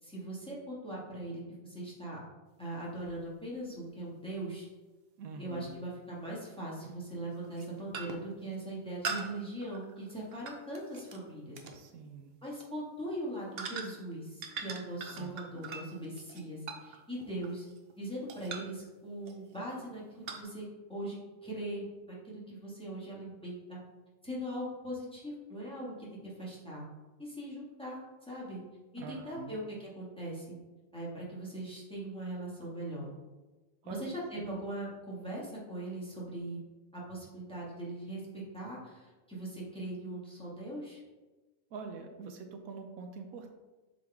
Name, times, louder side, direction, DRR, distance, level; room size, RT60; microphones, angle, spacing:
voice 1, 0.0-2.2 2.6-4.7 5.4-11.6 12.4-17.7 18.0-23.8 24.2-26.8 27.2-28.6 28.9-30.5 30.9-33.1 33.8-36.6 36.9-41.0, right 1 dB, 5° left, -6 dB, 1.7 m, -40 dB
sound 1, 3.0-3.1 5.6-5.7 6.8-7.0 7.4-7.7 7.9-8.3 9.0-11.2 11.6-11.8 12.4-12.7 13.6-14.1 14.4-17.9 18.3-18.8 19.3-19.6 20.3-20.4, right 5 dB, 55° right, 0.8 m, -42 dB
voice 2, 5.2-5.7 11.7-12.3 15.2-15.6 29.0-29.6 33.8-34.1 34.4-34.6 41.7-43.5, right 5 dB, 80° right, 5 dB, 1.1 m, -45 dB
7.7 x 4.0 x 3.5 m, 1.2 s
omnidirectional pair, 1.5 m